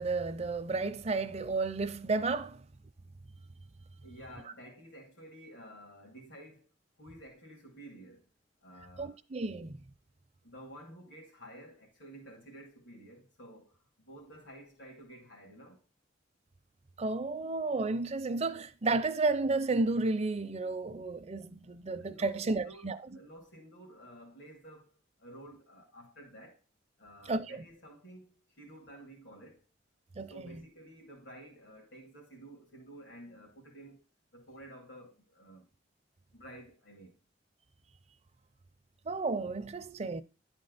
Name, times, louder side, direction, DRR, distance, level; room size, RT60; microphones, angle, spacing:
voice 1, 0.0-2.6 9.0-9.8 17.0-23.0 27.3-27.6 30.2-30.6 39.1-40.2, right 3 dB, 35° right, 0.5 m, -32 dB
voice 2, 4.0-6.7 7.0-8.3 8.6-9.2 10.4-15.8 21.9-26.6 27.0-29.6 30.3-34.1 34.3-35.7 36.3-37.2, right 1 dB, 85° left, 2.5 m, -52 dB
10.5 x 4.4 x 3.9 m
head